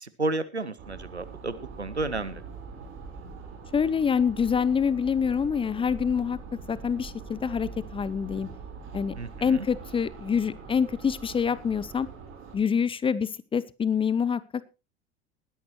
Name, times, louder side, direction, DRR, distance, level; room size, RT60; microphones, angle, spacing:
voice 1, 0.0-2.4 9.2-9.7, right 2 dB, 90° right, 15 dB, 0.8 m, -32 dB
sound 1, 0.8-12.6, right 5 dB, 40° right, 4.4 m, -43 dB
voice 2, 3.7-6.4 6.7-8.5 8.9-9.1 9.4-12.1 12.5-14.4, left 6 dB, 15° left, 19 dB, 0.7 m, -26 dB
20.0 x 10.5 x 3.1 m, 0.29 s
figure-of-eight pair, 75°, 32 cm